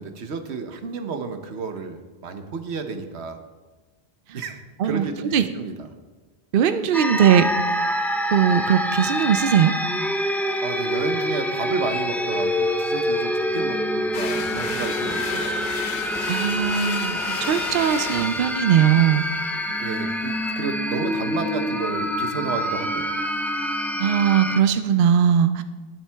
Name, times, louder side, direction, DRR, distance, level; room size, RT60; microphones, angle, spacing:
voice 1, 0.0-3.4 4.3-5.9 10.6-15.6 19.7-23.1, right 5 dB, 85° right, 7 dB, 1.2 m, -31 dB
voice 2, 6.5-7.5 8.3-9.7 16.3-19.6 24.0-25.6, right 8 dB, 60° right, 10 dB, 0.7 m, -20 dB
sound 1, 6.9-24.6, equal, 5° left, 0.3 m, -26 dB
sound 2, 14.1-20.5, left 8 dB, 60° left, 0.6 m, -34 dB
19.0 x 7.4 x 3.4 m, 1.3 s
omnidirectional pair, 1.1 m